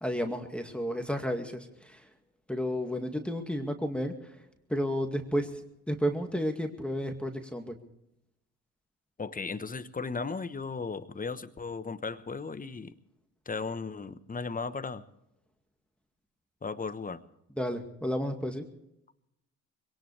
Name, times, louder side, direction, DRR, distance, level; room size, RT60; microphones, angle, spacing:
voice 1, 0.0-2.0 2.5-4.2 4.7-5.6 5.9-7.8 17.6-18.7, equal, 5° left, 4 dB, 2.1 m, -32 dB
voice 2, 9.2-12.9 13.4-15.0 16.6-17.2, left 4 dB, 20° left, 13 dB, 1.2 m, -36 dB
22.0 x 18.0 x 3.4 m, 0.83 s
supercardioid pair, 65°, 37 cm